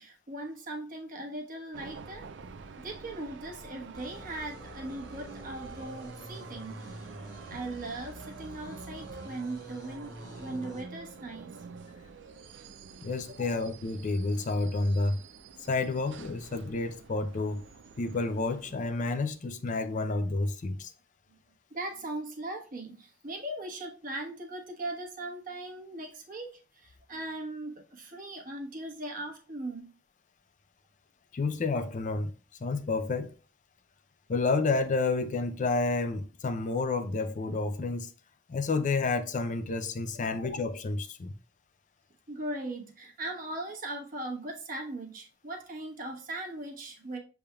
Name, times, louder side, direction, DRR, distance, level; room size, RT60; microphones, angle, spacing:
voice 1, 0.0-2.3 2.8-6.8 7.5-11.6 13.4-13.7 21.7-29.9 40.2-40.5 42.3-47.2, right 2 dB, 50° right, 1.1 m, -39 dB
sound 1, 1.7-19.1, right 5 dB, 75° right, 0.4 m, -48 dB
sound 2, 3.9-10.8, equal, 20° left, 1.2 m, -47 dB
voice 2, 13.0-15.2 15.7-17.6 18.0-20.9 31.3-32.3 32.6-33.3 34.3-38.1 38.5-41.3, left 3 dB, 45° left, 0.4 m, -30 dB
6.9 x 3.4 x 2.2 m
head